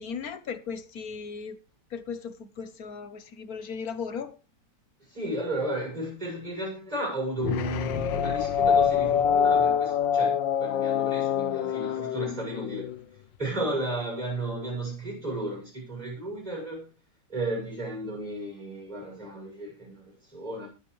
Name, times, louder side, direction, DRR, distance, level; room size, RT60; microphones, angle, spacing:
voice 1, 0.0-1.6 1.9-4.3, left 6 dB, 55° left, 1.5 m, -37 dB
voice 2, 5.0-12.9 13.4-16.9 17.3-20.7, right 1 dB, 20° right, 7.5 m, -34 dB
sound 1, 7.4-13.0, left 8 dB, 90° left, 1.6 m, -25 dB
21.5 x 7.6 x 3.3 m
omnidirectional pair, 2.0 m